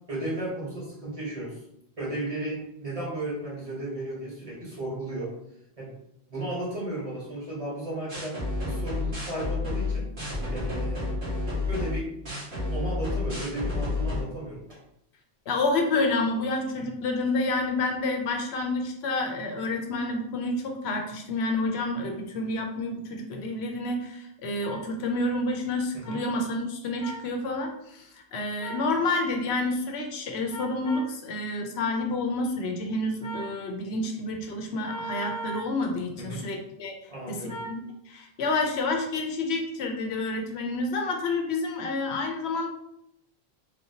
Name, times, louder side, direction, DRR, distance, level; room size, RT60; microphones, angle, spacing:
voice 1, 0.1-1.5 2.0-5.3 5.8-5.9 6.3-10.1 10.4-11.1 11.7-12.1 12.7-14.8 25.9-26.2 36.2-36.5 37.1-37.5, right 1 dB, 35° right, -5 dB, 1.3 m, -34 dB
sound 1, 8.1-14.2, left 2 dB, 75° right, 1.7 m, -30 dB
voice 2, 15.5-36.9 37.3-42.7, left 2 dB, 75° left, 3 dB, 0.9 m, -29 dB
sound 2, 24.6-24.8 26.0-26.2 27.0-27.2 28.6-28.9 30.5-31.1 33.2-33.5 34.8-35.7 37.5-37.8, right 2 dB, 55° right, 1.2 m, -37 dB
3.8 x 2.8 x 2.7 m, 0.78 s
omnidirectional pair, 1.1 m